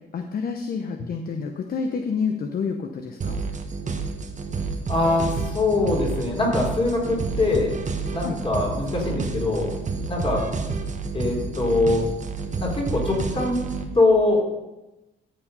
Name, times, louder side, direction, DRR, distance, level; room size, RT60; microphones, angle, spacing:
voice 1, 0.1-3.4 8.2-8.4, left 5 dB, 50° left, 5 dB, 0.9 m, -28 dB
sound 1, 3.2-13.9, right 4 dB, 40° right, 1.2 m, -30 dB
voice 2, 4.9-7.7 8.1-9.7 10.1-10.5 11.1-12.1 12.6-14.4, left 2 dB, 25° left, -1 dB, 3.8 m, -23 dB
14.0 x 5.0 x 5.4 m, 1.0 s
cardioid pair, 90°, 20 cm